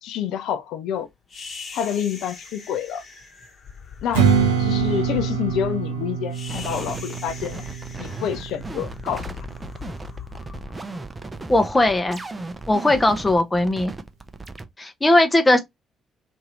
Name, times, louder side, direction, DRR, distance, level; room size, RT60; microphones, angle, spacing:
voice 1, 0.0-1.1 1.7-3.0 4.0-4.3 4.6-7.7 8.0-9.6, left 9 dB, 65° left, 0.4 m, -28 dB
sound 1, 1.3-11.7, left 6 dB, 45° left, 1.0 m, -40 dB
Strum, 4.1-9.4, right 6 dB, 80° right, 0.6 m, -25 dB
sound 2, 6.5-14.6, right 3 dB, 25° right, 0.6 m, -36 dB
voice 2, 11.5-12.2 12.7-13.9 14.8-15.6, left 1 dB, 20° left, 0.7 m, -18 dB
2.8 x 2.6 x 3.0 m
figure-of-eight pair, 45°, 0 cm